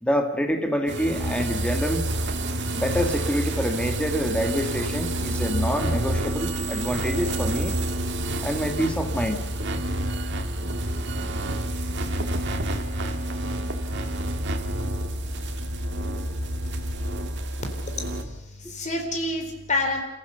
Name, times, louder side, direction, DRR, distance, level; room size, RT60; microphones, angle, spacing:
voice 1, 0.0-2.0 2.7-7.8 8.4-9.4, equal, 5° left, 4 dB, 1.9 m, -26 dB
sound 1, 0.9-18.2, right 1 dB, 55° right, 2.0 m, -28 dB
voice 2, 17.8-20.0, left 2 dB, 35° left, 4 dB, 3.9 m, -29 dB
28.5 x 14.5 x 6.9 m, 0.90 s
head